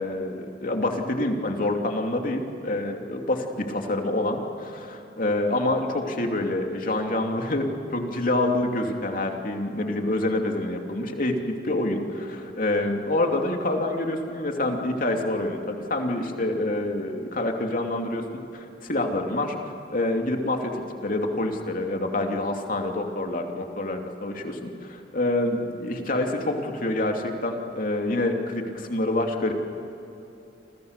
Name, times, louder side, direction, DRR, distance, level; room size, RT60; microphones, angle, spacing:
voice 1, 0.0-11.4 11.6-18.2 18.5-29.5, left 1 dB, 50° left, 3 dB, 2.8 m, -27 dB
29.5 x 26.0 x 6.7 m, 2.9 s
head